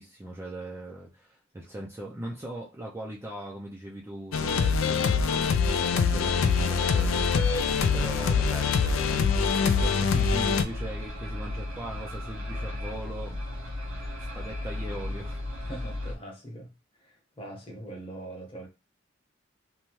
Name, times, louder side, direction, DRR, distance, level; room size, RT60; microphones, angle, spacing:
voice 1, 0.0-7.6 7.9-13.4 14.3-15.8, right 1 dB, 10° right, 0.4 m, -40 dB
sound 1, 4.3-10.6, left 5 dB, 75° left, 0.3 m, -24 dB
sound 2, 6.0-16.2, left 1 dB, 75° right, 0.9 m, -35 dB
voice 2, 15.7-18.7, right 1 dB, 25° left, 0.9 m, -42 dB
2.7 x 2.2 x 3.0 m
head